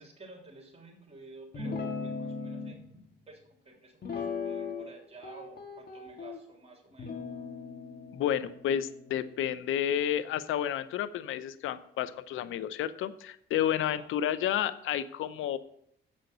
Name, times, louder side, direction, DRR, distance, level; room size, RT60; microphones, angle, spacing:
voice 1, 0.0-2.8 3.3-7.2 14.0-14.3, right 3 dB, 30° right, 1 dB, 3.2 m, -52 dB
Guitar, 1.5-2.8 4.0-4.9 5.2-6.4 7.0-10.5, left 4 dB, 50° left, 1.9 m, -39 dB
voice 2, 8.1-15.6, left 10 dB, 75° left, 14 dB, 0.7 m, -31 dB
7.7 x 6.4 x 6.7 m, 0.69 s
supercardioid pair, 65°, 21 cm